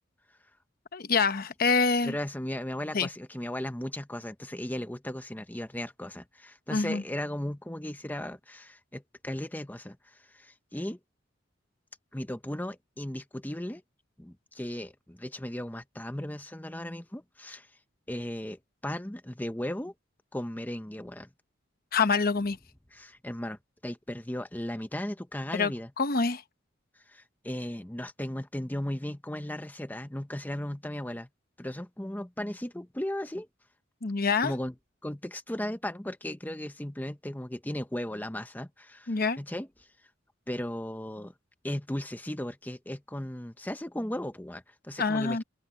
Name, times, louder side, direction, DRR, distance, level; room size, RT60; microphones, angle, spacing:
voice 1, 0.9-2.1 2.9-3.1 6.7-7.0 21.9-22.6 25.5-26.4 34.0-34.5 39.1-39.4 45.0-45.4, left 4 dB, 50° left, 0.9 m, -26 dB
voice 2, 2.0-11.0 12.1-13.8 14.2-17.7 18.1-19.9 20.3-21.3 22.9-25.9 27.1-31.3 31.6-33.5 34.4-34.7 35.0-39.7 40.5-41.3 41.6-45.4, left 1 dB, 10° left, 0.9 m, -36 dB
open air
head